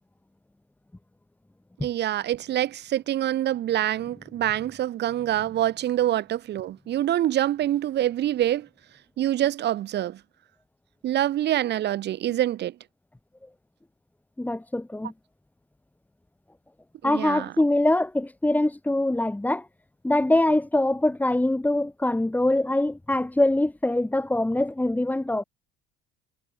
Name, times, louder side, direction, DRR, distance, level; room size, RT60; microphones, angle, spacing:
voice 1, 1.8-8.7 9.2-10.2 11.0-12.7 17.0-17.5, right 12 dB, 55° right, 2.6 m, -25 dB
voice 2, 14.4-15.1 17.0-19.7 20.0-25.4, left 1 dB, 10° left, 2.0 m, -23 dB
supercardioid pair, 85°, 21 cm